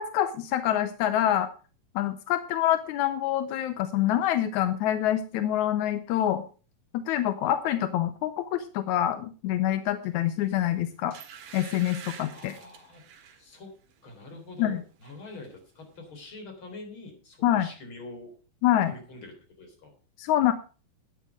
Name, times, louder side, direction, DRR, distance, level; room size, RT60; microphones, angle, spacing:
voice 1, 0.0-1.5 2.0-6.4 6.9-11.2 11.5-12.5 14.6-14.8 17.4-17.7 18.6-18.9 20.2-20.5, left 12 dB, 75° left, 11 dB, 1.8 m, -26 dB
sound 1, 10.4-10.6 11.1-13.4 13.9-14.1 14.4-15.2 15.4-15.5, right 8 dB, 70° right, 3.4 m, -46 dB
voice 2, 12.3-13.1 13.4-13.7 14.0-18.3 18.9-19.9, left 2 dB, 35° left, 4 dB, 4.2 m, -45 dB
12.5 x 9.3 x 4.9 m, 0.35 s
omnidirectional pair, 4.2 m